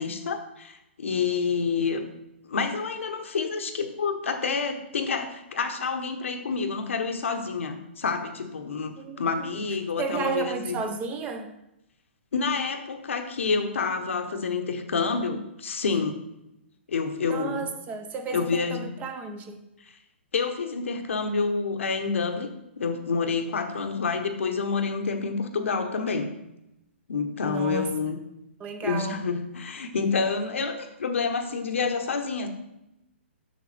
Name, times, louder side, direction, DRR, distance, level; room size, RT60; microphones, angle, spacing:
voice 1, 0.0-2.0 2.5-10.8 12.3-16.2 16.9-17.7 18.3-19.0 20.3-22.5 22.8-26.3 27.1-28.2 28.8-32.5, left 5 dB, 75° left, 6 dB, 0.9 m, -28 dB
voice 2, 10.0-11.5 17.2-19.6 27.4-27.9 28.6-29.3, right 4 dB, 20° right, 8 dB, 0.7 m, -32 dB
6.7 x 6.6 x 3.3 m, 0.86 s
hypercardioid pair, 135°, 7 cm